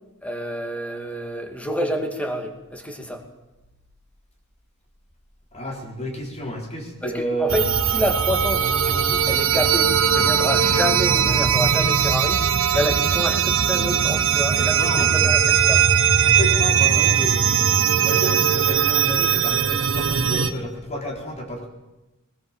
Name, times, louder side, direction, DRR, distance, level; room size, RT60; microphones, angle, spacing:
voice 1, 0.2-3.2 7.0-12.4 12.7-15.8, equal, 5° left, 5 dB, 2.4 m, -28 dB
voice 2, 5.5-7.6 14.7-15.3 16.2-21.7, equal, 30° left, 1 dB, 3.9 m, -31 dB
sound 1, 7.5-20.5, right 7 dB, 65° right, 1.0 m, -19 dB
19.5 x 19.5 x 7.4 m, 1.0 s
head